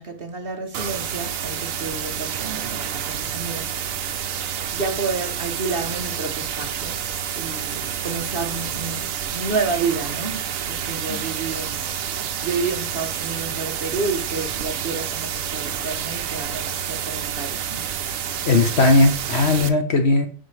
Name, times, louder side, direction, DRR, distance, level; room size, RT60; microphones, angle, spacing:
voice 1, 0.0-4.3 4.7-7.0 7.3-11.9 12.4-17.8, right 4 dB, 45° right, 1.0 m, -30 dB
sound 1, 0.7-19.7, right 8 dB, 70° right, 1.1 m, -29 dB
voice 2, 18.5-20.3, left 2 dB, 50° left, 1.1 m, -18 dB
11.5 x 4.3 x 3.2 m
omnidirectional pair, 1.5 m